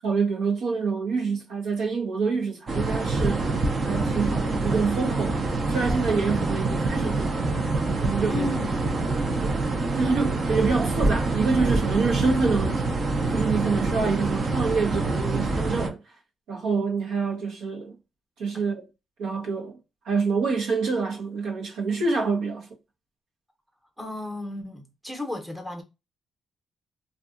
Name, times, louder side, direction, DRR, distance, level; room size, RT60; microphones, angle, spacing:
voice 1, 0.0-3.5 3.8-7.4 8.0-8.5 9.4-9.6 10.0-13.0 13.3-16.0 16.5-17.9 18.4-18.8 19.2-19.8 20.0-22.7, right 4 dB, 85° right, 0.9 m, -26 dB
sound 1, 2.7-15.9, right 3 dB, 40° right, 0.6 m, -26 dB
voice 2, 8.3-8.8 18.5-18.6 24.0-25.8, left 2 dB, 5° right, 0.8 m, -34 dB
2.7 x 2.4 x 2.4 m
cardioid pair, 90°, 0 cm